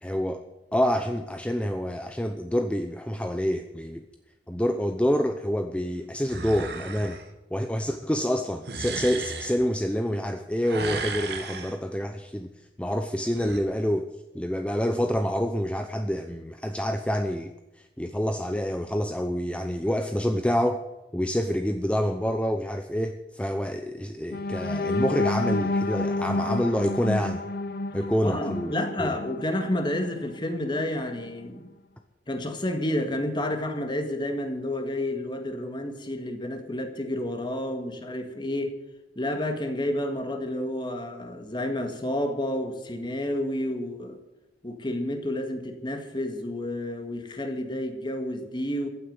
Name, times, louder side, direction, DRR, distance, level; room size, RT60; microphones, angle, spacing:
voice 1, 0.0-0.4 0.7-4.0 4.5-7.2 7.5-12.5 12.8-14.1 14.3-17.5 18.0-20.8 21.1-27.4 27.9-28.7 29.0-29.1, equal, 5° left, 6 dB, 0.7 m, -27 dB
sound 1, 6.3-7.2 8.6-9.6 10.6-11.8 13.2-13.6, right 4 dB, 65° right, 1.9 m, -35 dB
sound 2, 24.3-30.3 30.7-30.9 31.3-31.5, left 2 dB, 60° left, 0.9 m, -30 dB
voice 2, 28.2-31.7 32.3-38.7 39.2-44.2 44.6-48.9, left 1 dB, 25° left, 6 dB, 1.9 m, -30 dB
15.0 x 8.4 x 9.5 m, 0.97 s
head